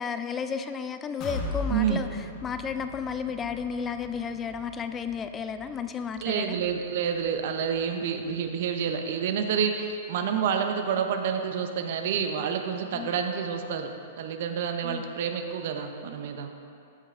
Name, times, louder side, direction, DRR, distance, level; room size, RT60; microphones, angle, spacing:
voice 1, 0.0-6.6 12.9-13.1 14.8-15.0, left 6 dB, 20° left, 9 dB, 0.4 m, -33 dB
sound 1, 1.2-9.0 9.4-9.5 9.9-10.0, left 2 dB, 35° left, 1.3 m, -39 dB
voice 2, 1.7-2.0 6.2-13.9 14.2-16.5, right 7 dB, 60° right, 6 dB, 0.8 m, -28 dB
14.0 x 5.2 x 3.7 m, 2.6 s
hypercardioid pair, 130°, 0 cm